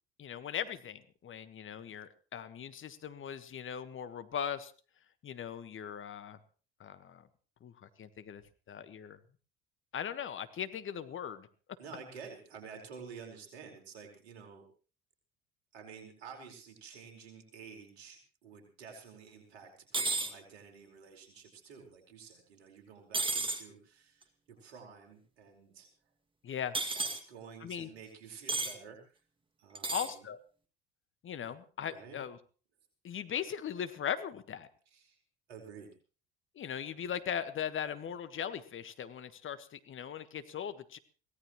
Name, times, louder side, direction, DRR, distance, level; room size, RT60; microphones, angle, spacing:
voice 1, 0.2-4.7 5.2-6.4 6.8-7.3 7.6-8.4 8.7-9.2 9.9-11.5 26.4-26.8 27.6-27.9 29.9-30.4 31.2-32.4 33.0-34.7 36.5-41.0, left 8 dB, 40° left, 11 dB, 1.5 m, -39 dB
voice 2, 11.8-14.7 15.7-25.9 26.9-29.1 29.6-30.3 31.4-31.5 31.9-32.2 34.9-35.2 35.5-35.9, right 6 dB, 70° right, 2 dB, 4.8 m, -51 dB
sound 1, 19.9-20.3 23.1-23.6 26.7-27.2 28.5-28.7 29.7-30.1, right 3 dB, 15° right, 2.3 m, -32 dB
23.5 x 17.5 x 3.1 m, 0.38 s
figure-of-eight pair, 55°, 32 cm